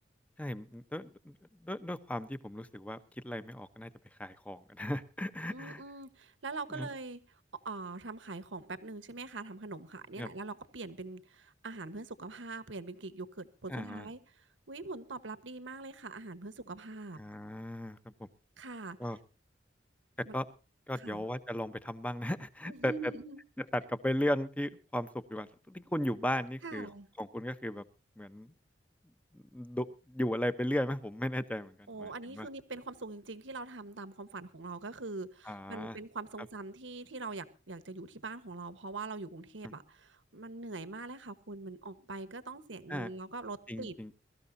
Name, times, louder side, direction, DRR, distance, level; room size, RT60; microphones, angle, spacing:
voice 1, 0.4-1.3 1.6-3.0 3.2-3.9 4.2-5.8 6.7-6.9 10.2-10.3 13.7-14.1 17.2-18.3 19.0-19.2 20.3-20.5 20.9-23.1 23.6-26.9 27.2-27.8 28.2-28.5 29.3-32.5 35.5-36.0 42.9-43.1 43.7-44.1, left 1 dB, 10° left, 0.8 m, -36 dB
voice 2, 5.5-7.2 7.6-14.2 14.7-17.2 18.6-19.1 20.2-20.4 20.9-21.3 22.6-23.4 26.6-27.1 31.9-44.0, right 3 dB, 90° right, 1.3 m, -43 dB
23.0 x 13.5 x 2.7 m
head